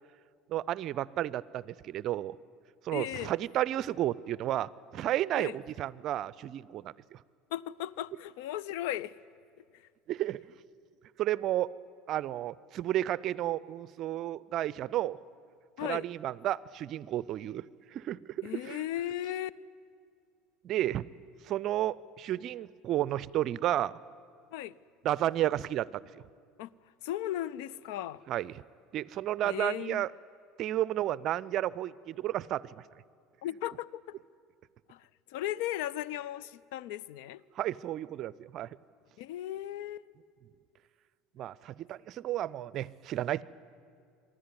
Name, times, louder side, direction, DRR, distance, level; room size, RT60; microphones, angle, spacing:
voice 1, 0.5-2.4 2.8-7.2 10.1-10.4 11.2-11.7 12.1-15.2 15.8-17.6 17.9-18.8 20.6-21.0 21.5-23.9 25.0-26.0 28.3-28.5 28.9-30.1 30.6-32.7 37.6-38.7 41.4-43.4, right 13 dB, 50° right, 21 dB, 0.5 m, -32 dB
voice 2, 2.9-3.3 5.4-5.6 7.5-9.1 9.7-9.8 15.8-16.0 18.4-19.5 24.5-24.7 26.6-26.7 27.0-28.2 29.4-30.1 33.4-34.2 34.9-37.4 39.2-40.1, left 13 dB, 65° left, 20 dB, 0.5 m, -36 dB
23.5 x 14.0 x 9.7 m, 2.2 s
hypercardioid pair, 70°, 0 cm